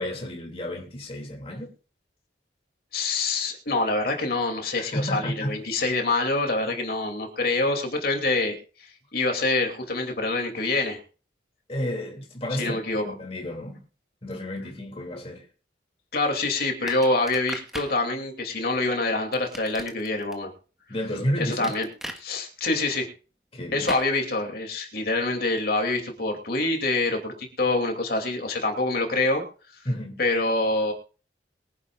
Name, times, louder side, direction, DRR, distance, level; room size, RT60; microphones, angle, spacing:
voice 1, 0.0-1.7 4.7-5.6 11.7-12.8 13.0-13.8 14.2-15.5 20.9-21.7 23.5-23.9 29.8-30.2, equal, 35° left, 2.7 m, -31 dB
voice 2, 2.9-11.0 12.6-13.0 16.1-20.5 21.4-21.9 22.2-23.1 23.7-29.4 29.7-29.8 30.2-30.9, left 2 dB, 55° left, 2.8 m, -26 dB
sound 1, 16.9-18.0 19.3-20.3 21.6-22.2 23.9-24.1, equal, ahead, 1.5 m, -37 dB
23.0 x 10.5 x 2.5 m
head